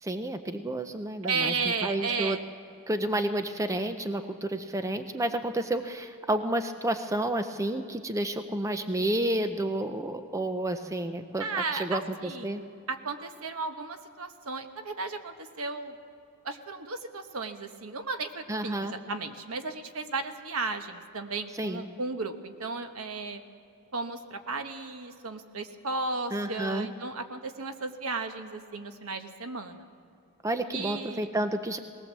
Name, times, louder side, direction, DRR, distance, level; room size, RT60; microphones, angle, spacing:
voice 1, 0.0-2.4 2.9-11.4 11.7-12.6 18.5-18.9 21.6-21.9 26.3-26.9 30.4-31.8, right 1 dB, 15° right, 8 dB, 0.6 m, -30 dB
voice 2, 1.2-2.5 11.4-12.6 12.9-16.0 16.4-23.4 23.9-29.9 30.7-31.3, right 4 dB, 70° right, 7 dB, 1.2 m, -34 dB
19.5 x 18.0 x 7.4 m, 2.5 s
head